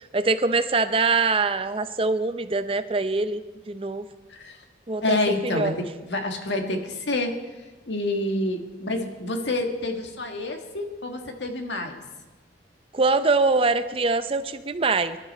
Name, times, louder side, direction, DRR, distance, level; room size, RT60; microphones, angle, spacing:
voice 1, 0.1-3.4 3.7-4.1 4.9-5.2 5.4-5.7 12.9-15.2, right 3 dB, 30° right, 11 dB, 0.6 m, -23 dB
voice 2, 5.0-7.4 7.9-12.0, left 2 dB, 70° left, 4 dB, 1.9 m, -28 dB
24.0 x 11.5 x 4.2 m, 1.2 s
head